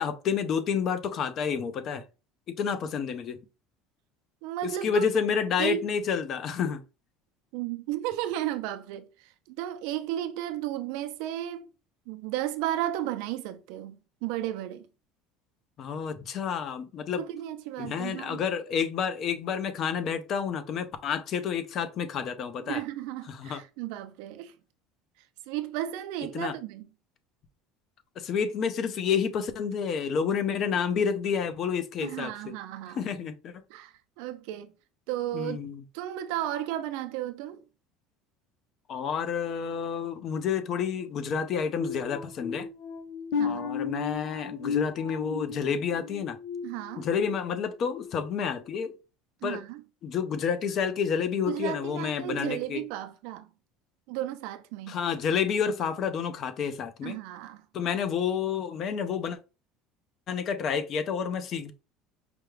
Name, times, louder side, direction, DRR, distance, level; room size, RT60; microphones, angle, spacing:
voice 1, 0.0-2.0 2.5-3.4 4.6-6.8 15.8-17.2 17.8-22.8 23.3-23.6 26.3-26.5 28.2-32.5 32.9-33.6 35.3-35.8 38.9-42.7 43.4-46.4 47.0-48.9 49.4-49.6 50.0-52.8 54.9-57.2 57.7-59.4 60.3-61.7, left 7 dB, 45° left, 0.6 m, -29 dB
voice 2, 4.4-5.0 5.6-5.8 7.5-9.1 9.5-11.7 12.1-14.0 14.2-14.8 17.1-18.4 22.7-24.5 25.5-26.9 32.0-33.0 33.7-34.7 35.1-35.6 35.9-37.6 43.4-43.7 46.6-47.1 49.4-49.8 51.5-53.5 54.1-55.0 57.0-57.6, right 13 dB, 75° right, 0.5 m, -34 dB
sound 1, 41.7-47.4 47.8-48.1 48.6-48.8, left 6 dB, 90° left, 0.9 m, -35 dB
5.0 x 2.3 x 3.2 m
cardioid pair, 130°, 0 cm